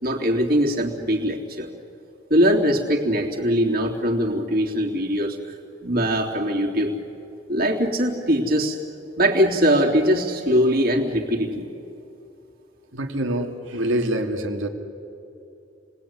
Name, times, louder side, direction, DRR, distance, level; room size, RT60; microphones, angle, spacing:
voice 1, 0.0-1.7 2.3-5.4 5.8-6.9 7.5-8.8 9.2-11.7, equal, 50° right, -1 dB, 3.4 m, -21 dB
voice 2, 12.9-14.7, right 1 dB, 85° right, 3 dB, 2.7 m, -25 dB
29.5 x 20.5 x 9.7 m, 2.7 s
head